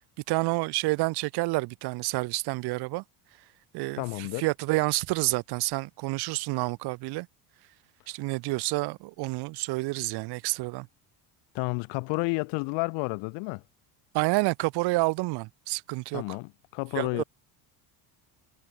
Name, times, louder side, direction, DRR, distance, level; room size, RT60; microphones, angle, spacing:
voice 1, 0.3-3.0 3.7-7.3 8.1-10.9 14.1-16.2 16.9-17.2, right 23 dB, 60° right, 0.9 m, -29 dB
voice 2, 3.9-4.5 11.5-13.6 16.1-17.2, left 30 dB, 70° left, 0.6 m, -31 dB
cardioid pair, 170°, 45 cm